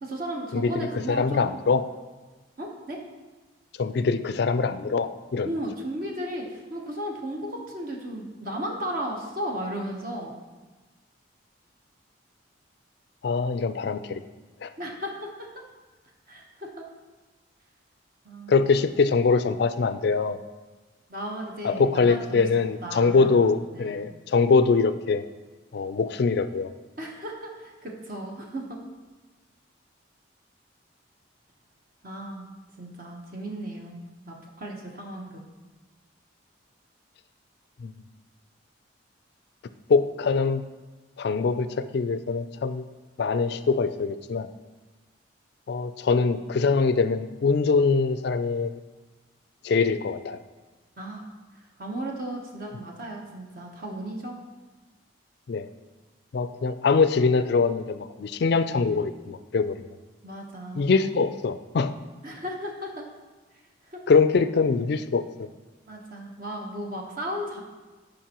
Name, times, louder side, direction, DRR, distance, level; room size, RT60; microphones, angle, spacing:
voice 1, 0.0-1.5 2.6-3.0 5.4-10.3 14.8-15.5 16.3-16.8 18.2-18.6 21.1-22.4 22.8-23.3 23.7-24.0 27.0-28.6 32.0-32.5 32.8-35.4 51.0-51.3 51.8-54.4 60.2-60.9 62.2-63.0 63.9-64.0 65.9-67.6, right 1 dB, 45° right, 0 dB, 1.0 m, -35 dB
voice 2, 0.5-1.8 3.8-5.5 13.2-14.2 14.6-14.7 18.5-20.4 21.6-25.2 25.7-26.7 37.8-37.9 39.9-40.6 41.2-42.8 43.2-44.5 45.7-48.7 49.6-50.4 55.5-55.7 56.3-59.9 60.7-61.9 64.1-65.5, left 4 dB, 55° left, 12 dB, 0.3 m, -23 dB
14.0 x 5.3 x 2.9 m, 1.2 s
head